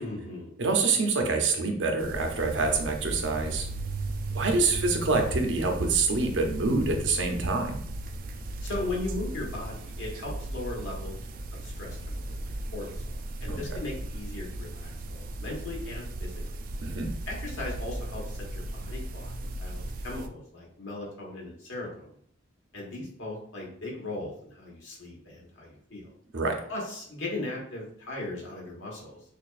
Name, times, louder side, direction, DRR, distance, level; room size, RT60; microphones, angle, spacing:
voice 1, 0.0-0.5 4.6-4.8 8.6-11.2 11.6-16.4 17.3-22.1 22.7-26.1 26.7-29.2, left 2 dB, 75° left, -2 dB, 1.4 m, -38 dB
voice 2, 0.6-3.7 4.3-7.8 13.5-13.6 16.8-17.1 26.3-26.6, right 3 dB, 70° right, 4 dB, 0.7 m, -26 dB
sound 1, 2.0-20.3, right 2 dB, 45° right, 0.3 m, -36 dB
6.0 x 2.4 x 2.5 m, 0.62 s
head